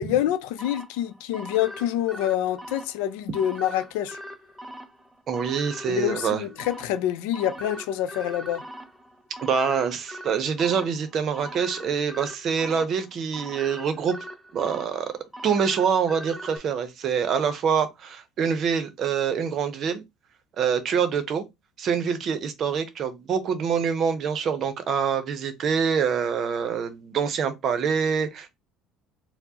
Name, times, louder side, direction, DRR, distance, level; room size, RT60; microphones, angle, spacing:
voice 1, 0.0-4.2 5.9-8.6, left 11 dB, 85° left, 0.5 m, -26 dB
sound 1, 0.6-16.6, equal, 10° right, 0.7 m, -41 dB
voice 2, 5.3-6.4 9.4-14.2 14.5-15.1 15.4-20.0 20.6-21.4 21.8-28.5, right 6 dB, 50° right, 0.7 m, -25 dB
4.4 x 2.1 x 2.8 m
supercardioid pair, 105°, 0 cm